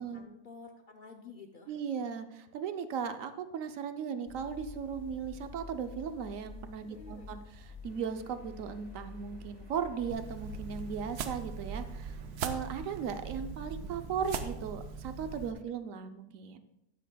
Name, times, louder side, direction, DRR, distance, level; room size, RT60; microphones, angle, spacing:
voice 1, 0.0-1.7 6.9-7.3, left 4 dB, 75° left, 4 dB, 0.4 m, -51 dB
voice 2, 1.7-16.6, right 7 dB, 65° right, 9 dB, 1.0 m, -37 dB
sound 1, 4.3-10.7, left 4 dB, 50° left, 1.0 m, -48 dB
sound 2, 7.8-13.1, right 3 dB, 50° right, 1.9 m, -61 dB
sound 3, 10.1-15.5, right 6 dB, 80° right, 1.2 m, -40 dB
12.5 x 9.1 x 2.2 m, 0.86 s
omnidirectional pair, 1.6 m